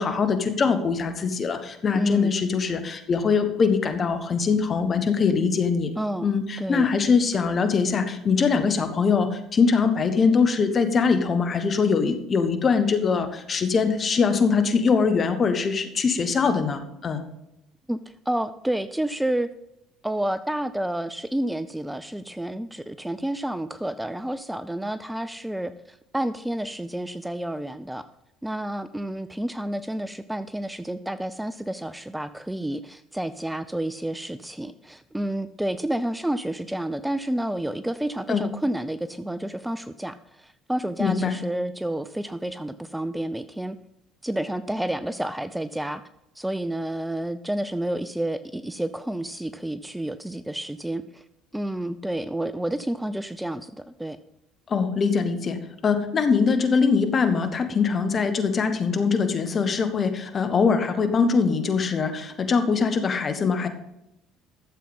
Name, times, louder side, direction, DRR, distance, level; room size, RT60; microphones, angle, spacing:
voice 1, 0.0-5.9 6.2-17.2 38.3-38.5 41.0-41.3 54.7-63.7, left 5 dB, 40° left, 8 dB, 1.9 m, -22 dB
voice 2, 1.9-2.3 6.0-6.3 6.6-6.9 17.9-18.0 18.3-19.5 20.0-28.0 28.4-43.8 44.2-46.0 46.4-51.2 51.5-54.2, right 1 dB, 5° right, 13 dB, 0.6 m, -30 dB
13.0 x 7.5 x 5.5 m, 0.85 s
hypercardioid pair, 60°, 0 cm